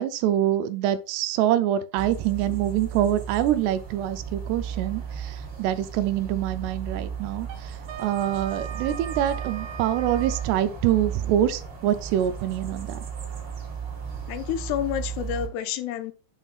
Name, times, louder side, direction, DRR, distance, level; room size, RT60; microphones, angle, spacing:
voice 1, 0.0-13.0, right 11 dB, 80° right, 2.6 m, -25 dB
sound 1, 1.9-15.5, right 7 dB, 45° right, 1.8 m, -35 dB
Wind instrument woodwind instrument, 7.4-10.5, right 8 dB, 65° right, 2.6 m, -39 dB
voice 2, 14.3-16.1, left 10 dB, 80° left, 2.5 m, -29 dB
8.1 x 5.7 x 2.4 m
omnidirectional pair, 4.9 m